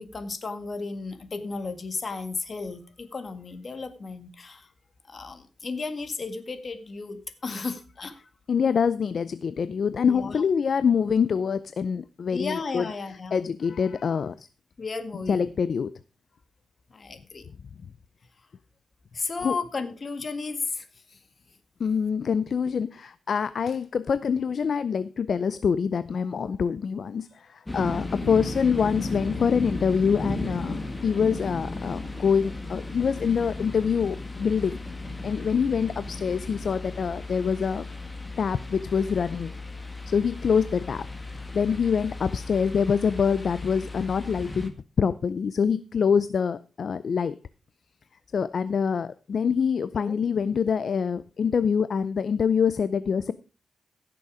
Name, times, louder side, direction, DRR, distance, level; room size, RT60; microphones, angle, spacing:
voice 1, 0.0-4.7 5.1-8.2 10.1-10.4 12.3-13.4 14.8-15.5 16.9-17.5 19.1-21.2 28.2-28.4 49.9-50.2, left 4 dB, 45° left, 9 dB, 1.8 m, -34 dB
voice 2, 8.5-12.8 13.3-14.5 15.3-16.0 19.4-19.6 21.8-37.9 38.4-39.5 40.1-41.1 41.5-44.7 45.0-47.4 48.3-53.3, left 6 dB, 60° left, 15 dB, 0.5 m, -25 dB
sound 1, 27.7-44.7, left 2 dB, 20° left, 1.9 m, -35 dB
15.5 x 6.9 x 4.9 m, 0.34 s
cardioid pair, 100°, 0 cm